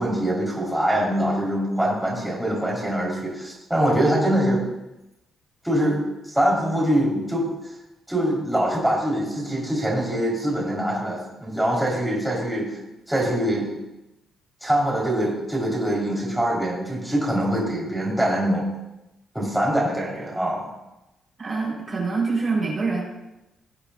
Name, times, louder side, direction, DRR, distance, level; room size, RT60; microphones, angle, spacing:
voice 1, 0.0-4.7 5.6-6.0 6.3-7.4 8.1-12.8 13.1-13.7 14.6-18.7 19.3-20.7, right 1 dB, 5° right, -5 dB, 4.6 m, -23 dB
voice 2, 21.4-23.0, right 4 dB, 40° right, -3 dB, 4.7 m, -25 dB
19.0 x 8.2 x 2.7 m, 0.96 s
cardioid pair, 90°, 0 cm